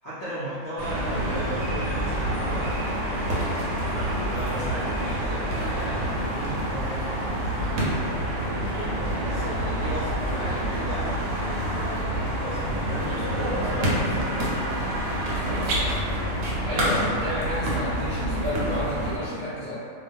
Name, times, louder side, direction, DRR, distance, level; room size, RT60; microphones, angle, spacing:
voice 1, 0.0-3.3 4.1-8.5 9.2-15.0, right 1 dB, 70° left, -11 dB, 0.5 m, -36 dB
sound 1, 0.8-19.2, right 1 dB, 90° right, 1.0 m, -27 dB
voice 2, 1.0-1.6 13.5-13.9 16.6-19.8, left 1 dB, 65° right, -13 dB, 0.3 m, -31 dB
2.2 x 2.2 x 2.6 m, 2.3 s
omnidirectional pair, 1.4 m